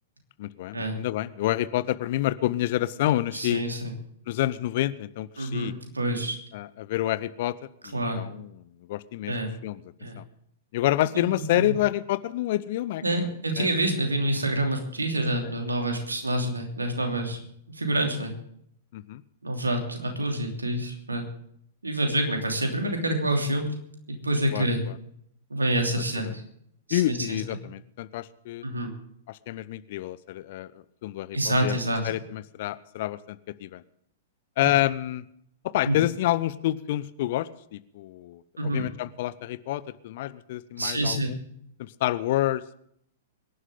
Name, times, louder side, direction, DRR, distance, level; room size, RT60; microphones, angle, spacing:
voice 1, 0.4-3.6 4.3-5.7 6.5-7.6 7.8-9.3 9.6-9.8 10.2-10.3 10.7-13.0 13.6-13.7 18.9-19.2 24.5-25.0 26.2-26.3 26.9-28.6 29.3-31.7 32.0-33.8 34.6-35.2 35.6-41.4 41.8-42.8, left 14 dB, 45° left, 17 dB, 0.7 m, -28 dB
voice 2, 3.3-3.9 5.4-6.4 7.9-8.2 9.3-9.5 10.0-10.2 11.1-11.7 13.0-17.4 17.7-18.3 19.4-21.3 21.8-23.7 24.1-24.8 25.5-26.4 26.9-27.2 28.6-28.9 31.3-32.0 34.6-34.7 35.9-36.0 38.6-38.9 40.8-41.3, right 1 dB, 75° right, 3 dB, 3.0 m, -27 dB
24.5 x 11.0 x 3.9 m, 0.70 s
figure-of-eight pair, 105°, 0 cm